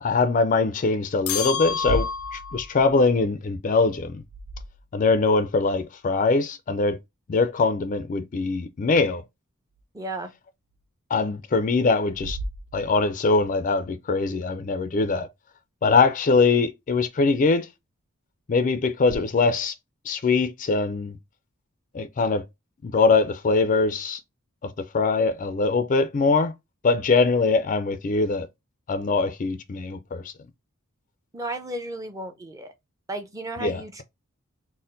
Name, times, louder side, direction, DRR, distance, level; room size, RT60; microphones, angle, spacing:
voice 1, 0.0-4.2 4.9-7.0 7.3-9.2 11.1-12.4 12.7-15.3 15.8-17.7 18.5-19.7 20.1-21.2 21.9-22.4 22.8-24.2 24.6-26.5 26.8-28.5 28.9-30.3 33.6-34.0, left 4 dB, 35° left, 0.4 m, -22 dB
sound 1, 1.3-2.6, left 6 dB, 90° left, 0.6 m, -29 dB
sound 2, 1.7-5.3 9.7-9.8 10.7-10.8 12.1-13.4 19.0-19.2, right 2 dB, 65° right, 0.5 m, -36 dB
voice 2, 9.9-10.3 31.3-32.7 33.1-34.0, right 2 dB, 15° right, 0.6 m, -34 dB
4.2 x 2.1 x 3.8 m
head